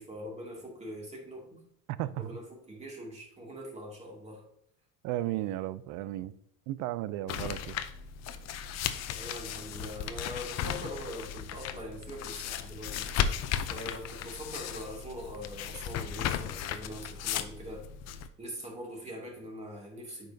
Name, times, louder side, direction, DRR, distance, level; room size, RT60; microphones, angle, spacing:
voice 1, 0.0-1.6 2.2-4.4 9.2-13.1 13.7-17.9 18.4-20.3, equal, 20° right, 2.4 m, -42 dB
voice 2, 1.9-2.3 5.0-6.3 6.7-7.8, right 14 dB, 75° right, 0.5 m, -34 dB
sound 1, 7.3-18.3, left 9 dB, 55° left, 0.6 m, -35 dB
8.8 x 5.3 x 2.7 m
cardioid pair, 115°, 32 cm